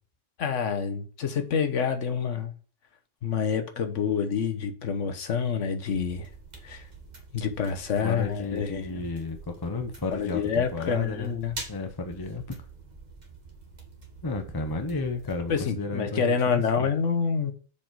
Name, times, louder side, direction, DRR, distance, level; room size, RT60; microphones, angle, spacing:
voice 1, 0.4-2.5 3.2-6.3 6.6-6.9 7.3-9.1 10.1-11.5 15.5-17.5, left 6 dB, 65° left, 1.4 m, -27 dB
sound 1, 5.9-15.6, right 3 dB, 35° right, 1.8 m, -46 dB
voice 2, 8.0-11.3 11.7-12.4 14.2-16.9, left 3 dB, 20° left, 0.9 m, -33 dB
7.2 x 5.1 x 4.9 m
omnidirectional pair, 1.4 m